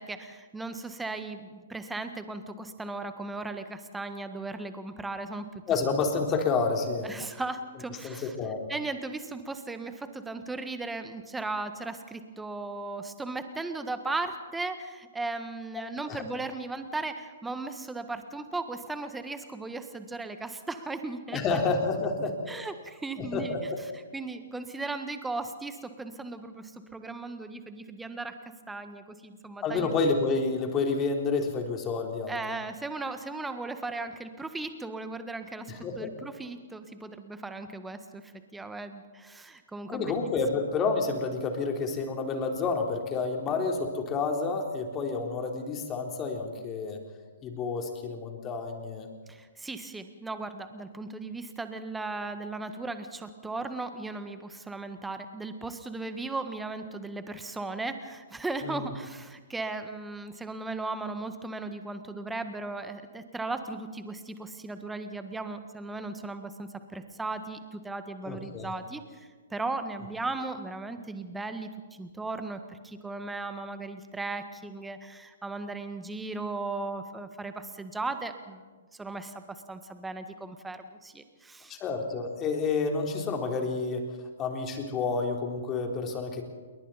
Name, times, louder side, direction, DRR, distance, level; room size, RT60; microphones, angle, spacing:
voice 1, 0.0-5.5 7.0-8.4 8.7-21.4 22.5-23.7 24.1-28.3 28.7-29.9 32.3-40.1 49.3-78.6 78.9-81.8, right 3 dB, 5° right, 9 dB, 1.6 m, -37 dB
voice 2, 5.7-7.1 8.0-8.7 16.1-16.2 21.3-22.6 23.2-23.8 29.6-32.4 35.7-36.1 39.9-47.0 47.4-49.1 58.6-58.8 68.3-68.7 81.7-86.4, left 4 dB, 20° left, 3 dB, 3.5 m, -29 dB
28.5 x 22.5 x 4.3 m, 1.5 s
figure-of-eight pair, 120°, 0 cm